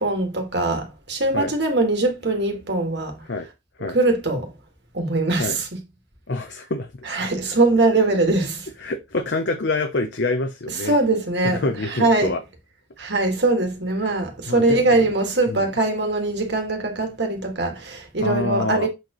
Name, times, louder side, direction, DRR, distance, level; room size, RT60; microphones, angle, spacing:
voice 1, 0.0-3.2 3.9-4.5 4.9-5.7 7.1-8.7 10.8-12.3 13.0-18.9, right 2 dB, 65° right, 2.0 m, -22 dB
voice 2, 6.3-7.3 8.8-11.0 11.4-12.4 14.5-15.1 15.5-15.7 18.2-18.9, left 3 dB, 65° left, 0.8 m, -26 dB
7.8 x 4.5 x 3.1 m
head